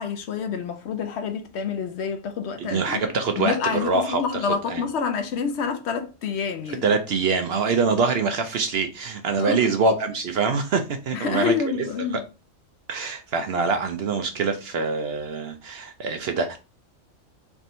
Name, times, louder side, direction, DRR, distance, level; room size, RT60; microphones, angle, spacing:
voice 1, 0.0-3.0 3.4-7.0 9.4-9.7 11.1-12.2, left 6 dB, 65° left, 0.8 m, -28 dB
voice 2, 2.6-4.2 4.7-4.8 6.8-11.5 12.0-12.2 12.9-16.6, right 4 dB, 65° right, 0.7 m, -24 dB
3.5 x 2.6 x 4.2 m
omnidirectional pair, 1.4 m